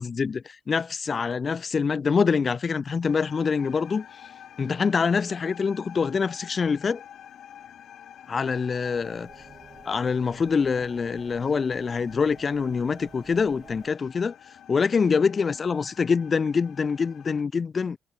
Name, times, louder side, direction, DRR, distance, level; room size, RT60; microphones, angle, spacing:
voice 1, 0.0-4.0 4.6-7.0 8.3-9.3 9.8-14.4 14.7-18.0, left 5 dB, 40° left, 1.6 m, -25 dB
sound 1, 3.0-17.4, left 10 dB, 60° left, 4.0 m, -48 dB
sound 2, 8.8-13.9, right 5 dB, 40° right, 5.8 m, -50 dB
figure-of-eight pair, 40°, 0 cm